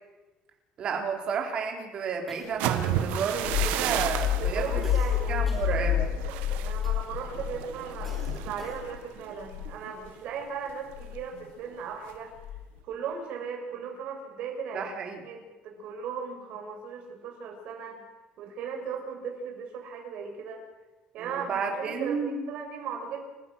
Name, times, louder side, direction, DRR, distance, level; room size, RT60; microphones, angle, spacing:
voice 1, 0.8-4.8 5.3-6.1 14.7-15.2 21.2-22.5, right 6 dB, 35° right, 3 dB, 4.1 m, -32 dB
sound 1, 2.3-3.2 3.5-4.0 4.8-6.3 6.8-7.3 8.0-9.1, equal, 5° left, 4.8 m, -49 dB
sound 2, 2.4-10.3 10.7-11.0 11.3-11.7, right 11 dB, 80° right, 1.7 m, -34 dB
sound 3, 3.1-9.0 9.4-9.7 10.9-11.2 12.4-12.8, left 9 dB, 70° left, 1.5 m, -29 dB
voice 2, 4.4-8.2 8.4-12.3 12.8-14.8 15.2-18.0 18.4-20.6 21.1-22.2 22.5-23.2, right 6 dB, 55° right, 2 dB, 6.2 m, -37 dB
29.5 x 15.0 x 6.4 m, 1.2 s
cardioid pair, 170°, 3 cm